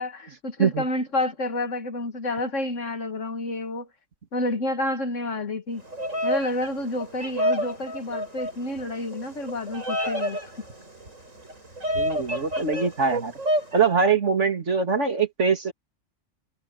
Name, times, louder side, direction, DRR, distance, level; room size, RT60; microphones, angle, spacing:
voice 1, 0.0-3.9 4.3-5.8 6.2-10.4, left 1 dB, 75° left, 2.2 m, -29 dB
Bird vocalization bird call bird song, 5.8-13.8, equal, 85° right, 7.5 m, -30 dB
voice 2, 11.9-13.3 13.7-15.7, right 5 dB, 65° right, 3.1 m, -23 dB
omnidirectional pair, 1.3 m